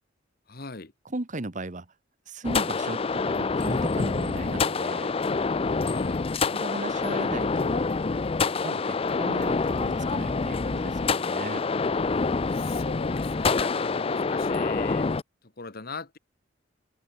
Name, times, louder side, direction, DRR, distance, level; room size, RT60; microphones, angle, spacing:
voice 1, 0.5-0.9 5.9-6.2 12.5-15.1 15.6-16.2, left 3 dB, 50° left, 1.6 m, -40 dB
voice 2, 1.0-1.9 2.3-5.1 6.5-7.9 8.6-11.6, right 2 dB, 40° right, 1.3 m, -36 dB
sound 1, 2.4-15.2, left 4 dB, 30° left, 0.5 m, -26 dB
head